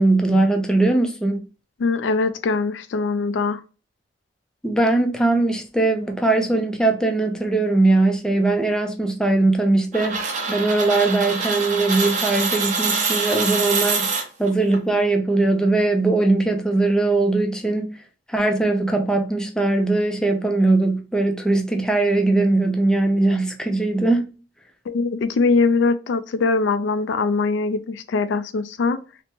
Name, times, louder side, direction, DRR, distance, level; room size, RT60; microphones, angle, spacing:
voice 1, 0.0-1.4 4.6-17.9 18.3-24.3, right 2 dB, 5° left, 0.4 m, -20 dB
voice 2, 1.8-3.6 24.9-29.0, left 4 dB, 90° left, 0.4 m, -22 dB
sound 1, 9.9-14.8, right 4 dB, 45° right, 0.7 m, -24 dB
3.3 x 2.0 x 2.8 m
head